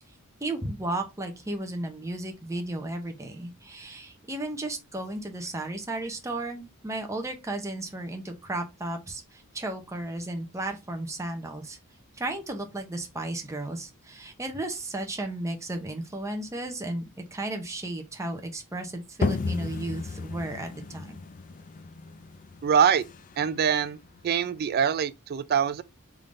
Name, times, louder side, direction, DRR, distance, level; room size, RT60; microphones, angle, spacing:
voice 1, 0.4-11.8 12.2-17.0 17.3-21.2, right 2 dB, 15° right, 0.7 m, -34 dB
sound 1, 19.2-24.7, left 4 dB, 35° left, 0.3 m, -34 dB
voice 2, 22.6-23.0 23.4-24.0 24.2-25.8, right 7 dB, 45° right, 0.3 m, -24 dB
3.7 x 3.4 x 2.5 m
head